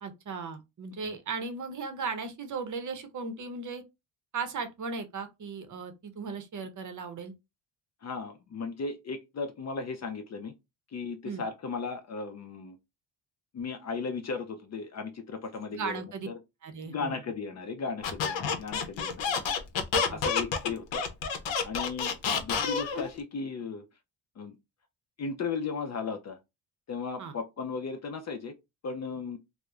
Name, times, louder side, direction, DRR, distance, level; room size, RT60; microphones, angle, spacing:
voice 1, 0.0-3.8 4.3-7.3 11.2-11.4 15.7-16.3 16.6-17.2 20.1-20.2 27.2-27.3, right 4 dB, 40° right, 0.7 m, -37 dB
voice 2, 8.0-10.5 10.9-12.8 13.5-16.3 16.8-19.4 20.1-21.0 21.6-22.1 22.4-23.9 24.4-24.6 25.2-26.4 26.9-28.5 28.8-29.4, left 4 dB, 35° left, 0.4 m, -36 dB
Squeak, 18.0-23.1, left 6 dB, 70° left, 0.7 m, -29 dB
2.9 x 2.0 x 2.3 m
cardioid pair, 85°, 46 cm